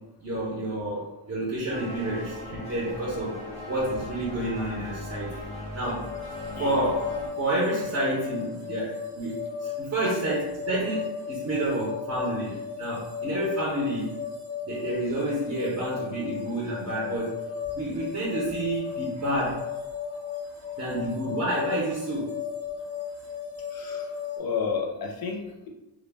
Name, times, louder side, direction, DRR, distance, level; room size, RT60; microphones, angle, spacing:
voice 1, 0.2-3.4 3.7-5.5 5.7-6.0 6.6-7.1 7.4-14.2 14.6-17.3 17.7-19.8 20.1-20.2 20.6-22.4, right 1 dB, 30° right, -5 dB, 0.6 m, -29 dB
sound 1, 1.7-7.3, left 1 dB, 15° left, 0.7 m, -39 dB
sound 2, 5.8-24.4, left 6 dB, 85° right, 1.1 m, -35 dB
voice 2, 23.7-25.7, left 6 dB, 50° left, 2 dB, 0.5 m, -32 dB
2.2 x 2.1 x 3.2 m, 1.0 s
wide cardioid pair, 155°, 47 cm